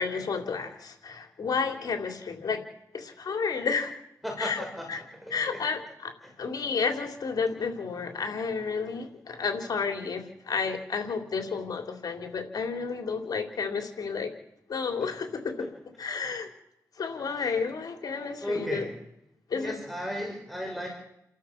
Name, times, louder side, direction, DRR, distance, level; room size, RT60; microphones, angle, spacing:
voice 1, 0.0-2.6 2.9-3.9 4.4-5.0 5.3-6.1 6.4-14.3 14.7-15.5 16.0-16.5 17.0-18.9 19.5-19.7, left 5 dB, 75° left, 5 dB, 3.5 m, -31 dB
voice 2, 4.2-5.6 6.2-6.3 15.0-15.1 15.6-15.7 16.2-16.3 17.4-17.5 18.4-18.9 19.5-20.9, equal, ahead, 1 dB, 5.9 m, -35 dB
29.5 x 13.0 x 7.4 m, 0.80 s
cardioid pair, 60°, 7 cm